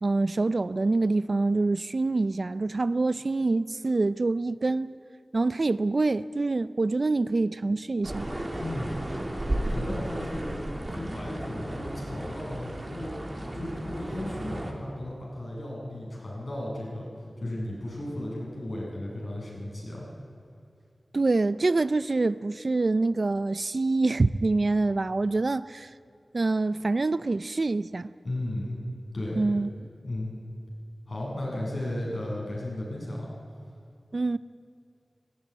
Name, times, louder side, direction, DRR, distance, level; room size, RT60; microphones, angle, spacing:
voice 1, 0.0-5.0 5.3-8.3 21.1-25.9 26.3-28.1 29.4-29.7 34.1-34.4, right 3 dB, 55° right, 0.4 m, -26 dB
sound 1, 8.0-14.7, right 1 dB, 30° right, 2.9 m, -34 dB
voice 2, 8.5-9.0 9.6-10.6 10.9-13.1 13.5-17.1 17.4-20.1 28.2-28.8 29.1-29.4 30.0-30.3 31.1-33.3, left 1 dB, 55° left, 7.4 m, -35 dB
18.5 x 16.0 x 9.4 m
wide cardioid pair, 70°, 0 cm